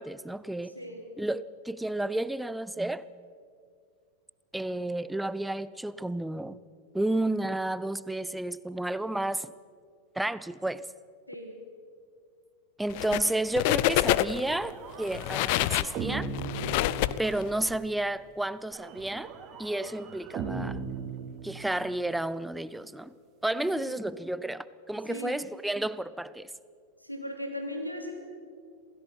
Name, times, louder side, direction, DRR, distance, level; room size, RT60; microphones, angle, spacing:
voice 1, 0.0-0.7 1.2-3.1 4.5-6.6 6.9-9.5 10.2-10.9 12.8-16.3 17.2-19.3 19.6-20.8 21.4-23.1 23.4-26.5, right 1 dB, 5° right, 0.6 m, -31 dB
voice 2, 0.7-1.1 11.3-11.6 23.5-24.0 25.0-25.4 27.0-28.1, left 1 dB, 90° left, 3.2 m, -38 dB
sound 1, 12.9-13.3 13.6-14.5 15.0-17.7, left 15 dB, 45° left, 0.6 m, -27 dB
sound 2, 14.3-17.6 18.7-22.0, right 5 dB, 30° right, 2.6 m, -38 dB
27.5 x 17.0 x 5.9 m
figure-of-eight pair, 90°, 0 cm